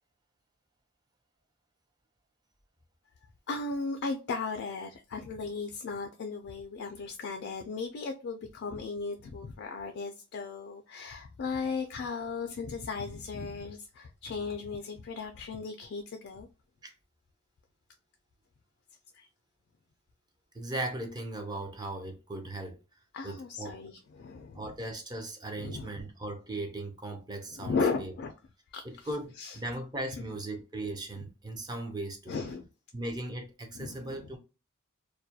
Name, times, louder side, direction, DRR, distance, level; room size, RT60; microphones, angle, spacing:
voice 1, 3.5-16.5 19.1-19.3 23.1-24.7 25.6-26.0 27.5-28.3 28.7-29.1 29.4-29.6 30.2-30.3 31.2-31.3 32.3-32.7 33.7-34.3, left 4 dB, 50° left, 0.3 m, -36 dB
voice 2, 20.5-22.8 23.2-23.8 24.5-28.1 28.8-32.4 32.9-34.4, right 2 dB, 20° right, 0.5 m, -38 dB
2.3 x 2.1 x 2.6 m
head